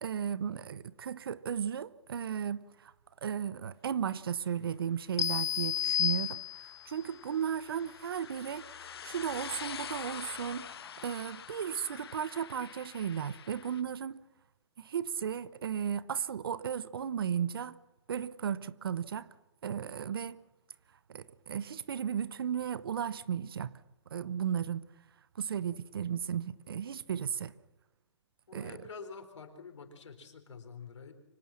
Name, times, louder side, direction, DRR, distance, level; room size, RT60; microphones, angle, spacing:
voice 1, 0.0-2.9 3.2-6.4 6.9-14.2 14.8-17.8 18.1-19.3 19.6-20.4 21.1-23.7 24.1-24.9 25.4-27.5 28.5-28.8, right 8 dB, 50° right, 0.8 m, -35 dB
sound 1, 5.2-6.9, left 10 dB, 35° left, 0.8 m, -31 dB
sound 2, 5.6-13.8, left 8 dB, 55° left, 1.2 m, -46 dB
voice 2, 28.5-31.1, left 5 dB, 80° left, 4.2 m, -47 dB
24.5 x 17.5 x 7.3 m
hypercardioid pair, 175°, 15 cm